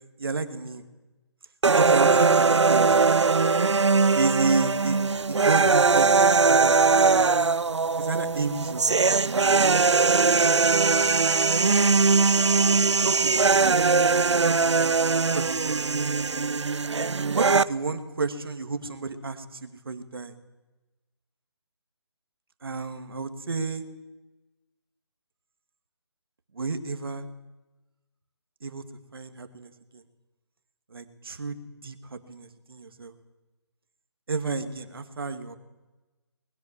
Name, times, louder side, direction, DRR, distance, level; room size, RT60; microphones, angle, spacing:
voice 1, 0.2-0.8 1.7-3.2 4.1-5.0 5.3-7.3 8.0-8.8 9.1-9.7 13.0-13.4 14.2-15.0 15.3-15.9 17.3-20.3 22.6-23.8 26.5-27.2 28.6-28.8 29.1-30.0 30.9-33.1 34.3-35.6, right 4 dB, 55° right, 8 dB, 2.6 m, -31 dB
sound 1, 1.6-17.6, right 4 dB, 80° right, 0.9 m, -21 dB
24.0 x 21.0 x 7.6 m, 1.1 s
hypercardioid pair, 175°, 15 cm